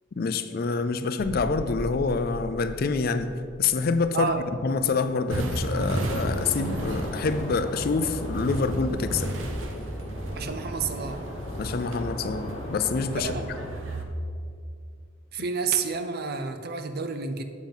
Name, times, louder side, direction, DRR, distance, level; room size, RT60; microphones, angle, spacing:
voice 1, 0.2-3.3 3.6-4.3 4.6-9.3 11.6-13.3, left 4 dB, 45° left, 10 dB, 0.4 m, -26 dB
sound 1, 1.2-6.9 7.2-7.4, left 1 dB, 65° left, 0.9 m, -42 dB
sound 2, 5.3-14.0, right 1 dB, 70° right, 0.9 m, -33 dB
sound 3, 6.2-13.7, left 1 dB, 30° left, 1.1 m, -39 dB
voice 2, 10.4-11.3 13.2-13.5 15.3-17.4, right 5 dB, 50° right, 8 dB, 0.6 m, -30 dB
7.4 x 7.2 x 5.4 m, 2.3 s
head